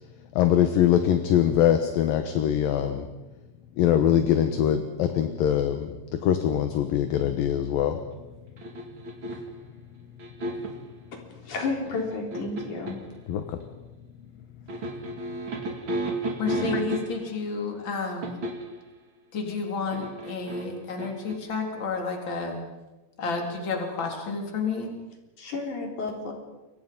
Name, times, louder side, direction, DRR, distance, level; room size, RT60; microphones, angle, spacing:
voice 1, 0.4-3.1 3.8-8.0 13.3-13.6 16.7-16.8, left 10 dB, 70° left, 7 dB, 2.7 m, -23 dB
sound 1, 8.6-9.6 10.2-10.9 11.9-13.1 14.7-17.4 18.2-18.8 19.9-21.3, right 2 dB, 35° right, 2.5 m, -32 dB
voice 2, 11.4-13.0 25.4-26.3, left 3 dB, 50° left, 1 dB, 5.0 m, -31 dB
voice 3, 16.4-18.4 19.3-22.6 23.2-24.9, left 4 dB, 30° left, 2 dB, 3.9 m, -31 dB
28.0 x 23.5 x 5.5 m, 1.1 s
omnidirectional pair, 4.7 m